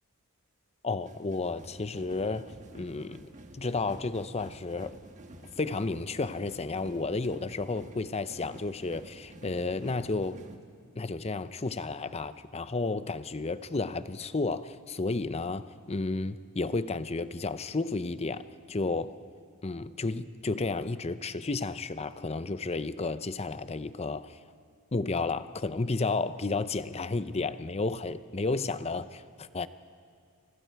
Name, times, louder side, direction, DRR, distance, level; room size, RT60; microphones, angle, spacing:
voice 1, 0.8-5.0 5.6-10.4 11.0-19.1 19.6-24.4 24.9-29.7, left 3 dB, 30° left, 0.6 m, -32 dB
sound 1, 1.0-10.6, right 1 dB, 35° right, 1.4 m, -50 dB
29.5 x 25.5 x 4.7 m
head